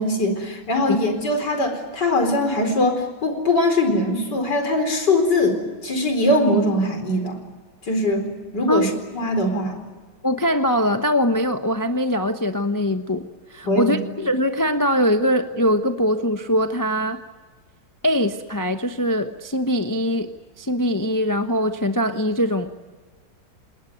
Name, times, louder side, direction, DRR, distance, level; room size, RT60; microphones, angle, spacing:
voice 1, 0.0-7.4 7.9-8.2 8.5-9.8 13.6-14.0, left 1 dB, 55° left, 6 dB, 4.9 m, -21 dB
voice 2, 10.2-17.2 18.0-20.3 20.6-22.7, equal, 15° left, 7 dB, 0.6 m, -22 dB
29.0 x 19.5 x 9.3 m, 1.4 s
omnidirectional pair, 2.2 m